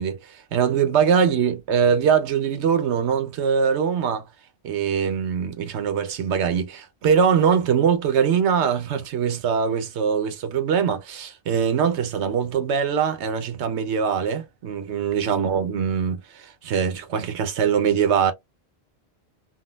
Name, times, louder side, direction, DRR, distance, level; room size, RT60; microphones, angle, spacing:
voice 1, 0.0-4.3 4.6-18.3, right 7 dB, 90° right, 1.0 m, -22 dB
3.7 x 2.1 x 2.3 m
omnidirectional pair, 1.1 m